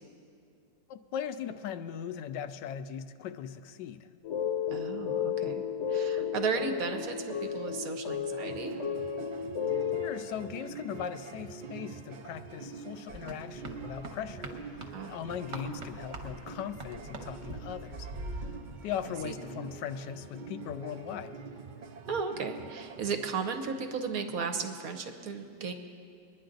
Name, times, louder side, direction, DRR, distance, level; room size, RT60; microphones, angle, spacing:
voice 1, 0.9-4.1 10.0-18.1 18.4-18.5 18.8-21.4, left 8 dB, 85° left, 11 dB, 1.2 m, -39 dB
sound 1, 4.2-10.1, left 7 dB, 50° left, 1.0 m, -33 dB
voice 2, 4.7-5.6 5.9-8.8 14.9-15.1 19.2-19.3 22.1-25.7, right 5 dB, 60° right, 6 dB, 1.2 m, -35 dB
sound 2, 8.5-23.3, right 5 dB, 90° right, 0.4 m, -45 dB
sound 3, 13.1-18.5, right 2 dB, 45° right, 1.3 m, -43 dB
22.5 x 10.5 x 3.9 m, 2.4 s
omnidirectional pair, 1.8 m